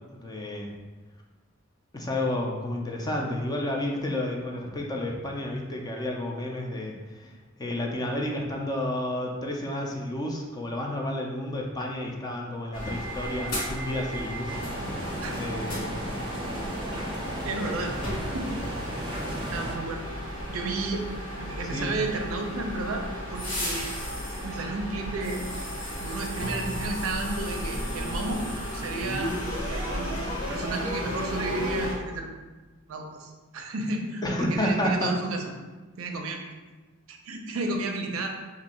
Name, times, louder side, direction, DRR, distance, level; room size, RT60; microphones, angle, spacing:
voice 1, 0.2-0.7 1.9-7.3 7.6-15.0 15.3-15.9 21.7-21.9 34.2-35.1, left 1 dB, 20° left, 0 dB, 0.4 m, -31 dB
sound 1, 12.7-31.9, equal, 80° left, 1.1 m, -34 dB
sound 2, 14.5-19.7, right 1 dB, 25° right, 0.7 m, -36 dB
voice 2, 17.4-17.9 18.3-18.5 19.3-20.1 20.5-21.0 21.4-23.9 24.4-25.5 26.0-28.4 28.7-29.4 29.7-32.3 32.9-35.4 36.0-36.4 37.1-38.3, right 3 dB, 70° right, 3 dB, 0.5 m, -32 dB
2.7 x 2.5 x 4.2 m, 1.2 s
head